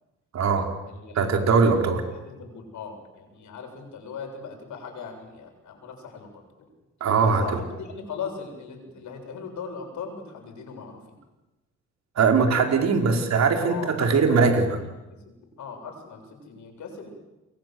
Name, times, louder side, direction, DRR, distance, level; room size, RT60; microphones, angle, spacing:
voice 1, 0.3-0.7 1.1-2.0 7.0-7.4 12.1-14.7, right 5 dB, 60° right, 4 dB, 4.7 m, -20 dB
voice 2, 1.0-1.7 2.3-6.3 7.2-11.0 13.0-13.2 13.7-14.6 15.1-17.1, left 5 dB, 75° left, 4 dB, 7.4 m, -38 dB
29.0 x 22.5 x 7.9 m, 1.0 s
cardioid pair, 90°, 30 cm